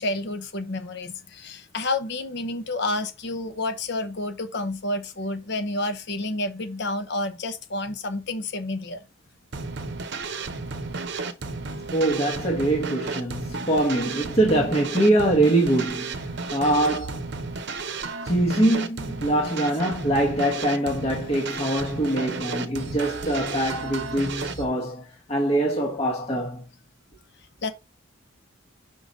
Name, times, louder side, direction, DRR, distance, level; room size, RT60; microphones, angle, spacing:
voice 1, 0.0-9.0 27.6-27.7, left 2 dB, 50° left, 0.9 m, -29 dB
sound 1, 9.5-24.7, right 4 dB, 55° right, 0.8 m, -33 dB
voice 2, 11.9-17.2 18.2-25.0 25.3-26.6, right 1 dB, 30° left, 1.1 m, -23 dB
5.5 x 3.9 x 5.1 m
head